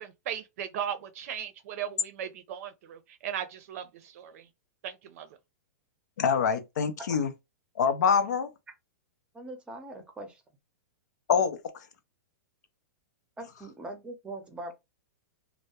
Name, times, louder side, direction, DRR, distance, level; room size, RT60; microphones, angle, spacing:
voice 1, 0.0-3.9 4.1-4.4 4.8-5.3, right 9 dB, 60° right, 0.5 m, -37 dB
voice 2, 6.2-7.3 7.8-8.5 11.3-11.6, left 6 dB, 85° left, 0.5 m, -25 dB
voice 3, 9.3-10.4 13.4-14.7, right 1 dB, 10° right, 0.6 m, -41 dB
2.2 x 2.0 x 2.8 m
hypercardioid pair, 135°, 9 cm